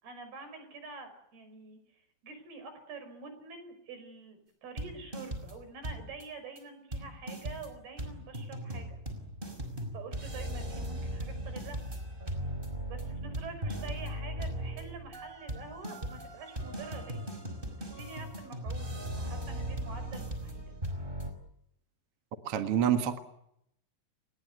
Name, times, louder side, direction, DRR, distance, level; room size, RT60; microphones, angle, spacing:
voice 1, 0.0-9.0 9.9-11.9 12.8-17.3 17.6-18.9 19.2-20.7, right 4 dB, 65° right, 9 dB, 7.3 m, -47 dB
sound 1, 4.8-5.6 5.8-6.2 6.6-6.7 6.9-21.3, right 1 dB, 10° right, 4.9 m, -38 dB
voice 2, 22.4-23.2, right 9 dB, 50° right, 7 dB, 2.0 m, -27 dB
29.0 x 21.0 x 8.1 m, 0.77 s
omnidirectional pair, 4.7 m